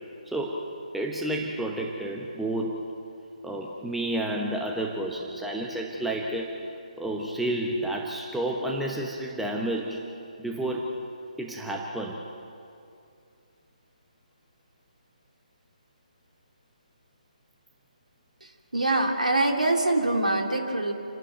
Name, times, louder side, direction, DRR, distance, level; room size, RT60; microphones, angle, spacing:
voice 1, 0.3-2.8 3.4-6.6 7.0-10.1 10.4-10.9 11.4-12.3, right 1 dB, ahead, 0 dB, 1.0 m, -30 dB
voice 2, 18.4-20.9, right 2 dB, 70° right, 2 dB, 2.8 m, -24 dB
28.0 x 12.5 x 9.0 m, 2.5 s
figure-of-eight pair, 145°, 4 cm